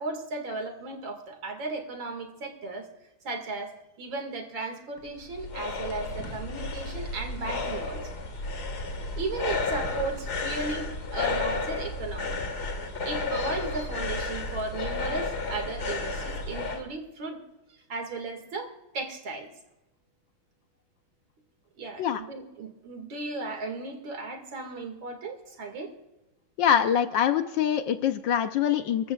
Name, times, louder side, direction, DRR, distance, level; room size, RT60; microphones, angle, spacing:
voice 1, 0.0-2.9 3.2-8.0 9.2-12.4 13.0-17.4 17.9-19.5 21.8-25.9, right 3 dB, 65° right, 5 dB, 2.7 m, -35 dB
sound 1, 5.0-16.8, left 3 dB, 50° left, 2.2 m, -32 dB
voice 2, 26.6-29.1, left 9 dB, 70° left, 9 dB, 1.2 m, -24 dB
26.5 x 14.0 x 2.3 m, 0.97 s
omnidirectional pair, 2.3 m